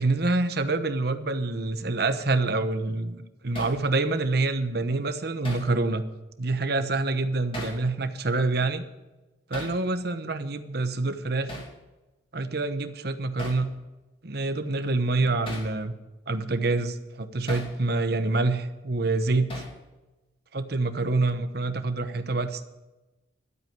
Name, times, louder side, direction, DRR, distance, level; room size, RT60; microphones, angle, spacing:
voice 1, 0.0-6.0 6.4-8.8 9.5-11.5 12.3-13.7 14.2-15.9 16.3-19.6 20.5-22.6, right 2 dB, 55° right, 9 dB, 1.0 m, -26 dB
Hammer, 3.6-3.8 5.4-5.7 7.5-7.8 9.5-9.8 11.5-11.7 13.4-13.7 15.5-15.7 17.5-17.7 19.5-19.8, equal, 30° left, 2.6 m, -37 dB
12.5 x 8.4 x 9.0 m, 1.1 s
head